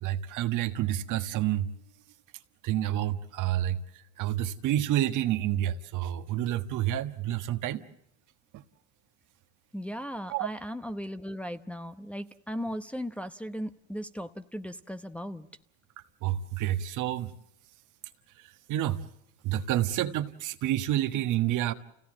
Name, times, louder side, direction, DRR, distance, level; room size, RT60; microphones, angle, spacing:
voice 1, 0.0-1.7 2.6-3.8 4.2-7.8 8.5-8.6 10.3-10.5 16.2-17.3 18.7-19.0 19.4-21.7, right 12 dB, 60° right, 1.5 m, -29 dB
voice 2, 9.7-15.5, equal, 5° left, 0.9 m, -37 dB
29.0 x 17.0 x 7.6 m
supercardioid pair, 85°, 34 cm